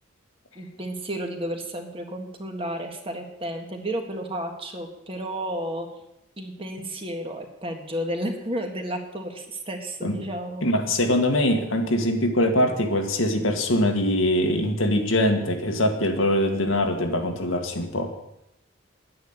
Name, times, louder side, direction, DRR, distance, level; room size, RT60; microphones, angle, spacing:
voice 1, 0.5-5.9 6.4-10.7, right 1 dB, 25° right, 3 dB, 1.7 m, -32 dB
voice 2, 10.6-18.1, left 1 dB, 85° left, 4 dB, 1.9 m, -23 dB
10.5 x 9.6 x 8.2 m, 0.86 s
head